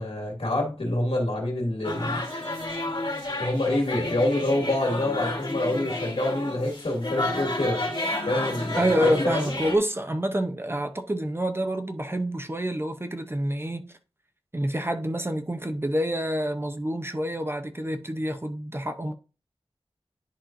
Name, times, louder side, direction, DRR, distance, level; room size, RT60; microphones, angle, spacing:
voice 1, 0.0-2.2 3.4-7.9 8.3-9.4, left 1 dB, 75° left, 2.3 m, -27 dB
sound 1, 1.8-9.8, left 2 dB, 50° left, 1.9 m, -31 dB
voice 2, 8.8-14.0 14.5-19.1, equal, 25° right, 0.7 m, -27 dB
10.5 x 4.3 x 2.6 m
wide cardioid pair, 70°, 10 cm